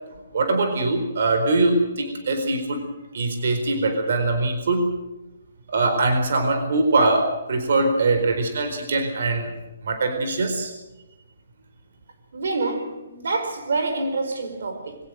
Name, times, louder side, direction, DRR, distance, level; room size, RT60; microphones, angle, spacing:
voice 1, 0.3-2.8 3.1-4.9 5.7-9.5 9.8-10.7, right 2 dB, 55° right, 4.4 m, -22 dB
voice 2, 12.3-15.0, right 3 dB, 75° right, 4.6 m, -27 dB
23.5 x 18.0 x 7.7 m
hypercardioid pair, 170°, 0 cm